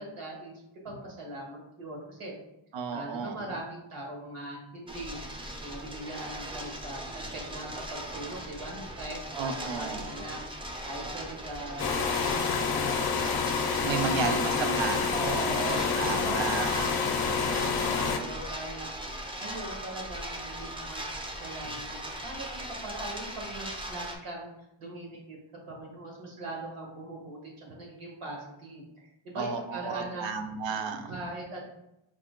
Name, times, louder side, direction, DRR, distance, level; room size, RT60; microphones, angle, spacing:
voice 1, 0.0-2.3 2.9-5.2 5.6-12.2 12.7-13.4 13.8-15.7 16.1-18.9 19.4-24.5 24.8-25.4 25.7-30.3 31.1-31.6, right 1 dB, 85° right, -1 dB, 1.4 m, -41 dB
voice 2, 2.7-3.4 9.3-10.1 13.8-16.7 29.4-31.2, right 5 dB, 65° right, 7 dB, 0.5 m, -33 dB
sound 1, 4.9-24.2, right 1 dB, 10° right, 0.3 m, -39 dB
sound 2, 11.8-18.2, left 5 dB, 50° left, 0.5 m, -28 dB
4.7 x 2.1 x 3.7 m, 0.87 s
wide cardioid pair, 135°, 50 cm